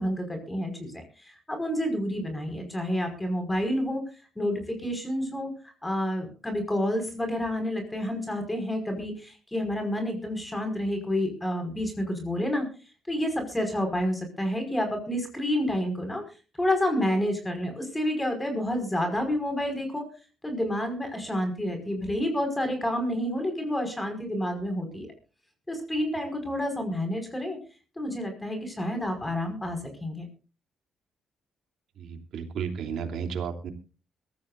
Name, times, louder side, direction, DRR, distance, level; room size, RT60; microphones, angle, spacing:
voice 1, 0.0-4.0 4.4-12.7 13.1-16.2 16.6-20.1 20.4-25.1 25.7-27.6 28.0-30.3, left 1 dB, 15° left, 5 dB, 5.3 m, -29 dB
voice 2, 32.0-33.7, right 7 dB, 70° right, 5 dB, 3.0 m, -33 dB
22.5 x 14.5 x 2.6 m, 0.35 s
cardioid pair, 90°, 0 cm